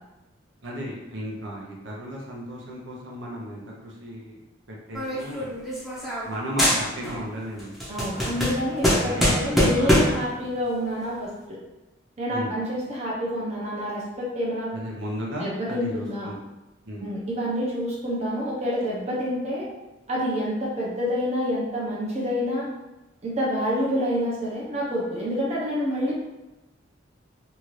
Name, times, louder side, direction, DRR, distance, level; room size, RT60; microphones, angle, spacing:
voice 1, 0.6-4.3 4.7-5.6 6.2-7.8 8.7-10.3 12.3-12.6 14.7-16.4 16.9-17.1, equal, 75° right, -3 dB, 0.7 m, -35 dB
sound 1, 4.9-6.3 6.6-7.3 7.6-10.3, equal, ahead, 0.7 m, -23 dB
voice 2, 7.9-11.6 12.2-14.7 15.4-16.3 17.0-19.7 20.1-22.7 23.2-26.1, equal, 35° right, -5 dB, 0.7 m, -28 dB
2.8 x 2.5 x 3.1 m, 1.0 s
head